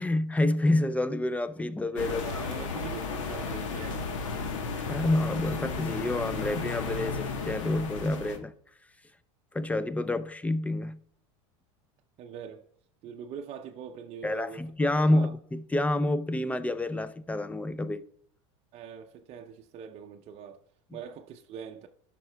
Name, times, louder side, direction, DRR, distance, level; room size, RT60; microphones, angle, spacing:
voice 1, 0.0-2.6 4.8-8.5 9.5-11.0 14.2-18.0, left 1 dB, 10° left, 0.4 m, -28 dB
sound 1, 2.0-8.4, left 4 dB, 85° left, 1.2 m, -34 dB
voice 2, 2.1-4.2 12.2-12.7 13.0-14.6 15.1-15.3 18.7-20.6 20.9-21.9, right 7 dB, 40° right, 0.6 m, -43 dB
14.5 x 5.8 x 2.3 m
supercardioid pair, 105°, 16 cm